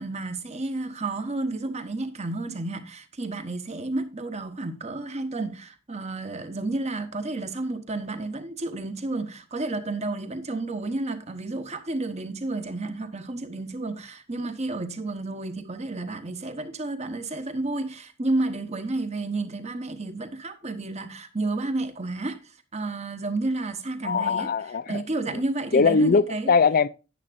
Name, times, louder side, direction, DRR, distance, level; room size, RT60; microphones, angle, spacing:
voice 1, 0.0-24.5 24.9-26.5, right 2 dB, 30° right, 1.1 m, -31 dB
voice 2, 24.0-25.0 25.7-26.9, left 4 dB, 45° left, 0.4 m, -21 dB
10.5 x 9.9 x 2.5 m
head